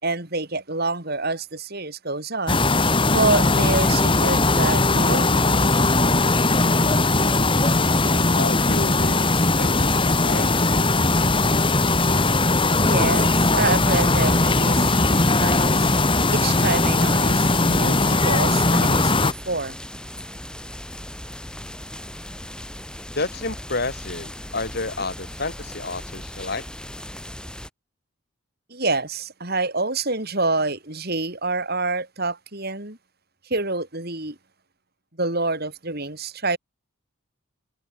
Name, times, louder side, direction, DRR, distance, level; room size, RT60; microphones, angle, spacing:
voice 1, 0.0-2.6 3.1-5.7 12.7-15.9 16.3-19.8 28.7-33.0 33.4-34.4 35.2-36.6, right 3 dB, 45° right, 4.6 m, -27 dB
sound 1, 2.5-19.3, left 2 dB, 25° left, 2.4 m, -19 dB
voice 2, 8.4-10.7 23.2-26.6, left 2 dB, 50° left, 2.6 m, -30 dB
sound 2, 13.9-27.7, left 1 dB, 5° left, 6.3 m, -38 dB
head